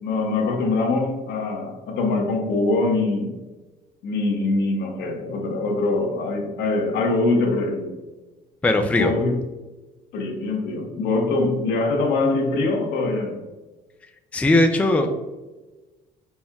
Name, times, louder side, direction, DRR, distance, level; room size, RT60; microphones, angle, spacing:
voice 1, 0.0-3.4 4.0-8.0 8.9-9.4 10.1-13.4, left 2 dB, 75° left, 1.0 m, -23 dB
voice 2, 8.6-9.1 14.3-15.1, left 2 dB, 10° left, 0.4 m, -18 dB
4.3 x 3.4 x 2.3 m
cardioid pair, 110°, 17 cm